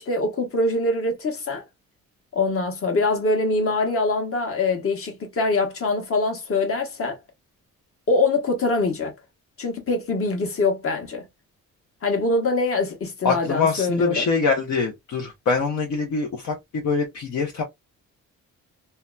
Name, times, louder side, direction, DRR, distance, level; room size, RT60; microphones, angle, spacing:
voice 1, 0.0-1.6 2.3-7.2 8.1-9.1 9.6-11.2 12.0-14.3, left 3 dB, 40° left, 1.1 m, -23 dB
voice 2, 13.2-17.6, left 4 dB, 60° left, 0.7 m, -24 dB
2.7 x 2.2 x 2.3 m
cardioid pair, 90°, 33 cm